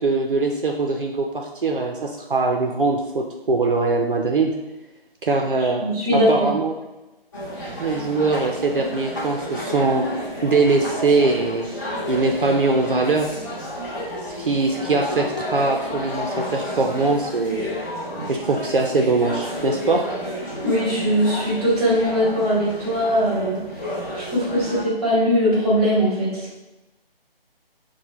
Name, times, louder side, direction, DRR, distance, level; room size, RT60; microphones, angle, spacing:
voice 1, 0.0-4.5 5.2-5.8 6.1-6.7 7.8-10.1 10.4-11.7 12.1-13.3 14.4-17.7 18.3-20.0, right 3 dB, 60° right, 1 dB, 0.5 m, -22 dB
voice 2, 5.8-6.5 20.6-23.6 24.1-26.5, equal, 10° right, -7 dB, 1.2 m, -20 dB
sound 1, 7.3-24.8, equal, 20° left, 0.7 m, -31 dB
5.7 x 2.2 x 3.0 m, 1.1 s
figure-of-eight pair, 150°, 30 cm